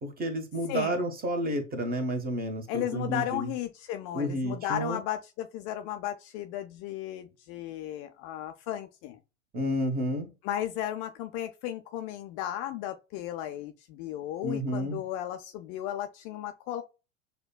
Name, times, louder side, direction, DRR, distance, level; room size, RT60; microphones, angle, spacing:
voice 1, 0.0-3.5 4.1-5.0 9.5-10.3 14.4-15.0, equal, 20° right, 1.1 m, -30 dB
voice 2, 0.7-1.1 2.7-9.2 10.4-16.8, left 12 dB, 40° left, 0.5 m, -35 dB
6.6 x 2.3 x 2.2 m
hypercardioid pair, 85°, 41 cm